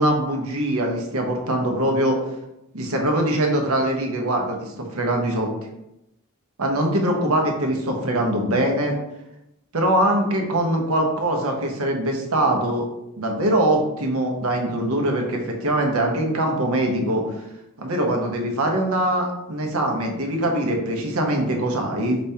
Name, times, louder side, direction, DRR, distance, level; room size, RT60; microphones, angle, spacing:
voice 1, 0.0-2.2 2.7-5.5 6.6-8.9 9.7-12.9 13.2-17.2 17.8-22.2, right 1 dB, 75° right, 2 dB, 1.0 m, -22 dB
5.0 x 3.5 x 2.8 m, 0.85 s
head